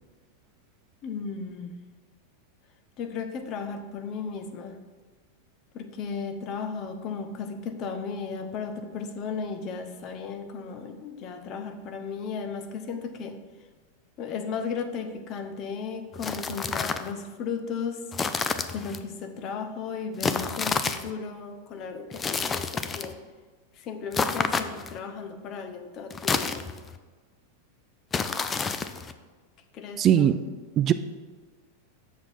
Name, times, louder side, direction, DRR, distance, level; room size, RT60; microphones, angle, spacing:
voice 1, 1.0-1.8 3.0-4.8 5.7-13.4 14.2-18.0 18.7-23.2 23.8-26.6 29.7-30.3, left 5 dB, 45° left, 7 dB, 0.9 m, -35 dB
sound 1, 16.1-17.1 18.1-19.0 20.2-21.1 22.1-23.1 24.1-25.0 26.1-27.0 28.1-29.1, left 5 dB, 20° left, 0.5 m, -29 dB
voice 2, 30.0-30.4 30.8-30.9, right 10 dB, 35° right, 11 dB, 0.4 m, -20 dB
6.9 x 6.1 x 4.4 m, 1.3 s
hypercardioid pair, 100°, 0 cm